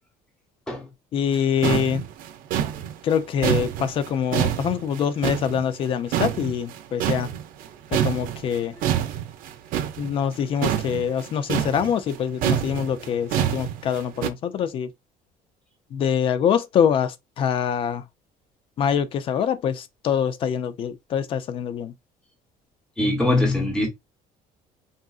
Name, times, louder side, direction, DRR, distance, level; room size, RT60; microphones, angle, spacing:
voice 1, 1.1-2.0 3.0-7.3 7.9-8.7 10.0-14.9 15.9-18.0 18.8-21.9, left 8 dB, 35° left, 0.4 m, -24 dB
sound 1, 1.3-1.4 1.6-5.9 6.1-7.7 7.9-14.3, right 10 dB, 60° right, 0.5 m, -26 dB
voice 2, 23.0-23.9, left 2 dB, 5° left, 0.9 m, -22 dB
3.7 x 2.4 x 2.3 m
cardioid pair, 180°, 16 cm